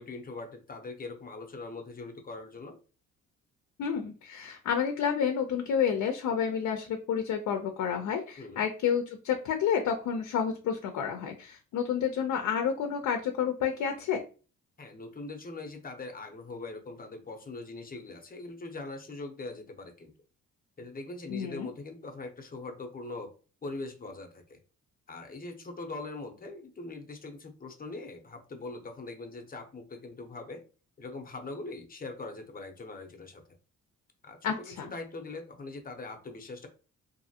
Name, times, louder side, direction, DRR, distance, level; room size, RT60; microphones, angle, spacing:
voice 1, 0.0-2.8 8.4-8.6 14.8-20.1 20.8-23.3 23.6-24.6 25.1-30.6 31.0-33.4 34.2-36.7, left 3 dB, 30° left, 4 dB, 0.7 m, -42 dB
voice 2, 3.8-14.2 21.3-21.7 34.4-34.9, left 7 dB, 70° left, 5 dB, 0.6 m, -30 dB
2.6 x 2.5 x 2.7 m, 0.35 s
cardioid pair, 90°, 30 cm